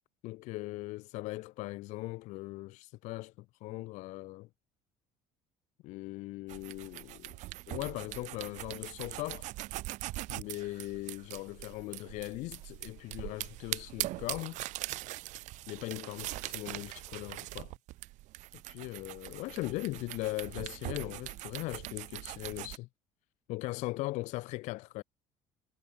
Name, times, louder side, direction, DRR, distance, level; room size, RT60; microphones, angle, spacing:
voice 1, 0.2-4.5 5.8-7.4 7.7-9.5 10.3-14.6 15.7-17.7 18.7-22.9 23.5-25.0, left 20 dB, 65° left, 0.4 m, -39 dB
sound 1, 6.5-22.8, right 18 dB, 70° right, 1.8 m, -42 dB
cardioid pair, 110°, 13 cm